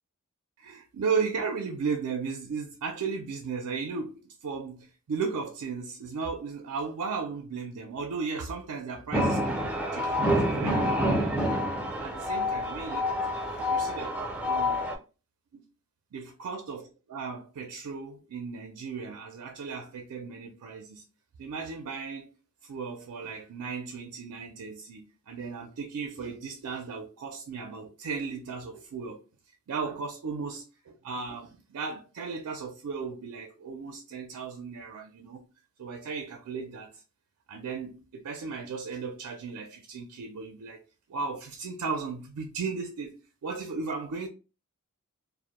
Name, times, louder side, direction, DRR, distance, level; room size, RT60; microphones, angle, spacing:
voice 1, 0.6-11.6 12.0-14.9 15.5-15.6 16.1-21.0 21.4-22.3 22.6-29.2 29.7-35.4 35.8-37.0 37.5-40.8 41.1-43.2 43.4-44.3, right 5 dB, 75° right, 0.4 m, -36 dB
sound 1, 9.1-14.9, left 1 dB, 5° right, 0.4 m, -27 dB
2.1 x 2.1 x 2.9 m
head